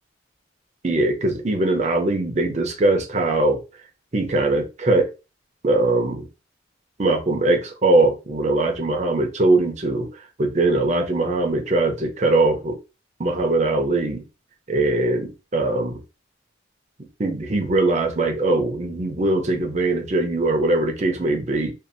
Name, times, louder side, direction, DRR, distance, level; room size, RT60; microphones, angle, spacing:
voice 1, 0.8-3.6 4.1-5.1 5.6-6.3 7.0-10.1 10.4-12.8 13.2-14.2 14.7-16.0 17.2-21.7, right 2 dB, 40° right, 0.6 m, -21 dB
2.7 x 2.4 x 2.5 m
head